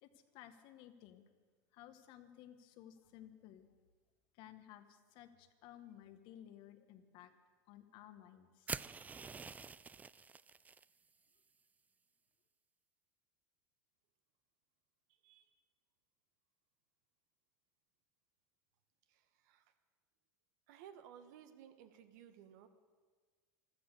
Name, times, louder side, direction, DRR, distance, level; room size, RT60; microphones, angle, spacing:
voice 1, 0.0-1.3 1.7-3.7 4.3-7.3 7.7-8.8, left 11 dB, 60° left, 9 dB, 1.4 m, -57 dB
sound 1, 8.7-10.9, right 5 dB, 15° right, 0.3 m, -46 dB
voice 2, 19.1-19.7 20.7-22.7, right 9 dB, 70° right, 9 dB, 1.4 m, -58 dB
14.5 x 13.0 x 6.8 m, 1.5 s
hypercardioid pair, 100°, 10 cm